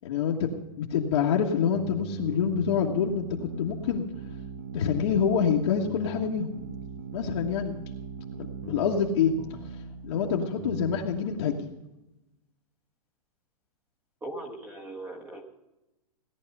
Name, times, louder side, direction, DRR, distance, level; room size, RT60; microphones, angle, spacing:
voice 1, 0.0-4.0 4.7-6.5 7.1-7.8 8.7-9.3 10.0-11.7, left 7 dB, 50° left, -3 dB, 1.5 m, -26 dB
sound 1, 1.7-11.2, right 4 dB, 65° right, 1.6 m, -39 dB
voice 2, 14.2-15.4, right 2 dB, 10° right, 2 dB, 1.4 m, -39 dB
17.5 x 10.5 x 5.4 m, 0.98 s
hypercardioid pair, 165°, 19 cm